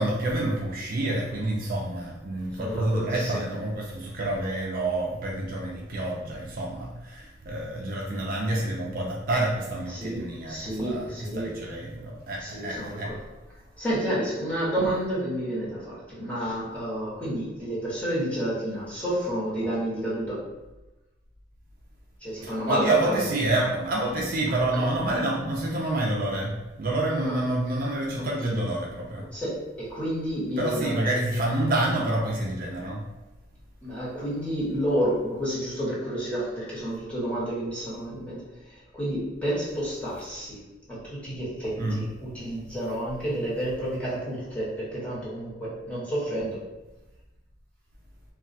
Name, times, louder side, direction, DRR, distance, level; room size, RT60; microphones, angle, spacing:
voice 1, 0.0-13.1 22.4-29.3 30.6-33.0 41.8-42.0, right 1 dB, 50° right, -1 dB, 0.4 m, -28 dB
voice 2, 2.5-3.4 9.9-11.5 12.4-13.2 13.8-20.4 22.2-23.2 27.1-27.3 28.2-28.7 29.3-31.0 33.8-40.6 40.9-46.6, equal, 5° left, -9 dB, 1.2 m, -30 dB
2.3 x 2.2 x 3.9 m, 1.0 s
head